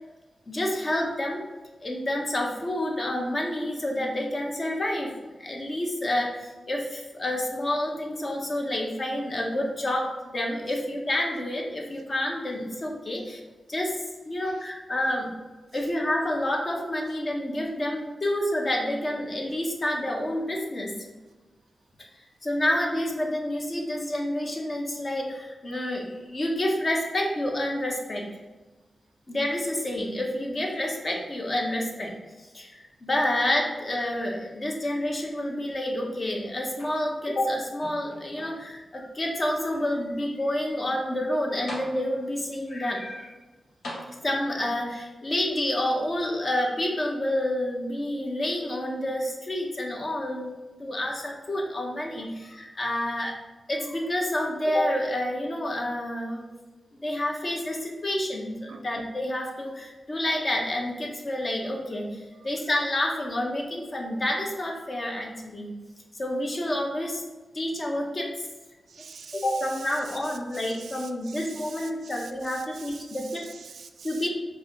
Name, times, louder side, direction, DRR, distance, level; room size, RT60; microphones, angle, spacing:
voice 1, 0.5-1.4 1.8-5.1 5.4-13.4 13.7-15.3 15.7-21.0 22.4-28.3 29.3-43.3 44.2-50.5 50.8-53.4 53.7-56.5 57.0-65.7 66.1-67.2 67.5-68.5 69.3-73.4 74.0-74.3, left 1 dB, 45° left, 0 dB, 1.0 m, -29 dB
sound 1, 36.7-37.4 37.8-38.8 39.5-39.6 41.2-41.3 41.7-42.4 43.8-44.7 45.8-45.9, left 1 dB, 85° left, 1.1 m, -41 dB
voice 2, 68.9-69.4 70.5-74.2, right 5 dB, 80° right, 7 dB, 0.4 m, -46 dB
4.8 x 2.6 x 3.9 m, 1.2 s
cardioid pair, 55°, 0 cm